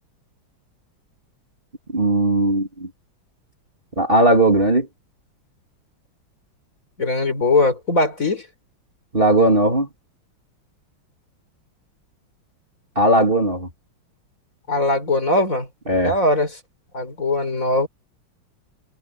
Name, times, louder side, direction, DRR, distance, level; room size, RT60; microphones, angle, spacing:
voice 1, 1.9-2.9 4.0-4.9 9.1-9.9 13.0-13.7 15.9-16.1, right 1 dB, 25° right, 2.8 m, -17 dB
voice 2, 7.0-8.5 14.7-15.7 16.0-16.6 16.9-17.9, left 2 dB, 40° left, 4.7 m, -20 dB
omnidirectional pair, 2.3 m